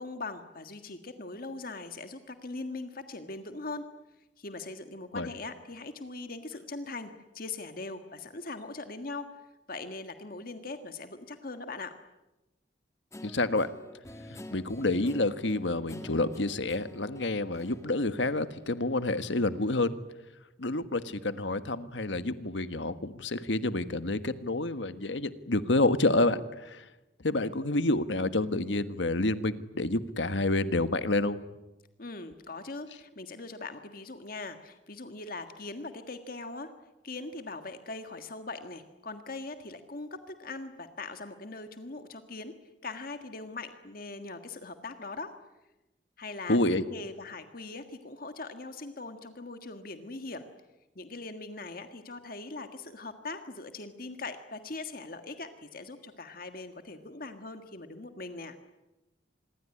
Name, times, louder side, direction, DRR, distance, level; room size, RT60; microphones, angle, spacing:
voice 1, 0.0-3.8 4.4-9.3 9.7-11.9 32.0-36.7 37.0-42.5 42.8-45.3 46.2-46.6 46.9-50.5 50.9-58.6, left 3 dB, 50° left, 7 dB, 1.7 m, -41 dB
Guitar, 13.1-18.9, left 1 dB, 15° left, 2.1 m, -48 dB
voice 2, 13.2-13.7 14.3-20.0 20.6-26.8 27.2-31.4 46.5-46.8, left 2 dB, 80° left, 11 dB, 1.5 m, -28 dB
26.0 x 22.0 x 9.8 m, 1.0 s
head